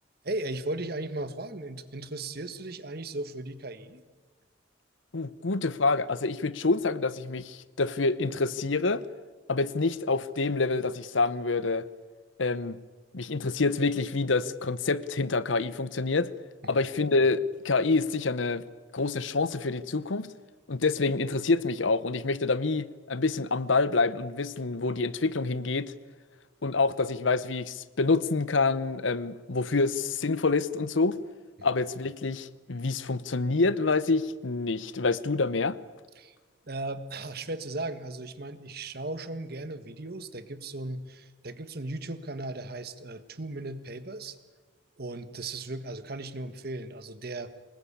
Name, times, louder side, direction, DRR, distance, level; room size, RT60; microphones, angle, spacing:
voice 1, 0.2-4.0 16.6-16.7 36.2-36.3 36.7-44.4 45.0-47.5, right 2 dB, 55° right, 12 dB, 1.5 m, -36 dB
voice 2, 5.1-9.0 9.5-11.9 12.4-12.8 13.1-16.3 16.6-18.6 18.9-20.3 20.7-25.9 26.6-31.2 31.6-35.8, left 3 dB, 80° left, 17 dB, 0.9 m, -27 dB
24.5 x 20.5 x 8.6 m, 1.3 s
head